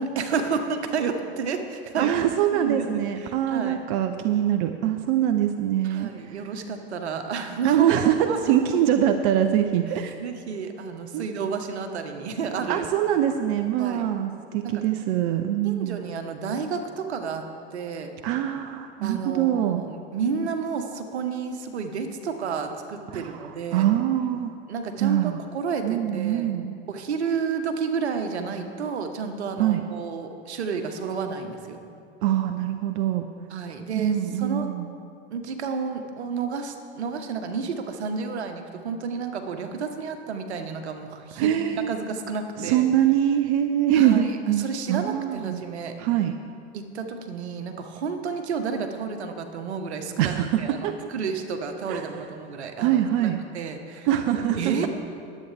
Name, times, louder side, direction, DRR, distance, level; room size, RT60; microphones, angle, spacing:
voice 1, 0.0-2.2 2.5-2.9 3.2-3.8 5.8-7.9 8.3-8.6 10.2-12.9 13.8-14.1 14.6-14.8 15.6-17.4 17.7-18.1 19.0-23.9 24.7-26.5 26.9-31.8 33.5-34.7 35.3-42.8 43.9-44.3 44.6-45.9 46.7-54.1 54.6-54.9, right 5 dB, 80° right, 6 dB, 1.3 m, -31 dB
voice 2, 2.0-6.1 7.6-10.1 11.1-11.3 12.7-16.0 18.2-19.8 23.1-23.5 23.7-24.5 25.0-25.4 25.8-26.8 29.6-29.9 32.2-33.3 33.9-34.9 41.4-41.9 42.6-45.6 46.0-46.4 50.2-51.0 51.9-52.1 52.8-53.4 54.1-54.9, right 11 dB, 55° right, 7 dB, 0.7 m, -23 dB
22.0 x 8.5 x 3.4 m, 2.4 s
hypercardioid pair, 90°, 32 cm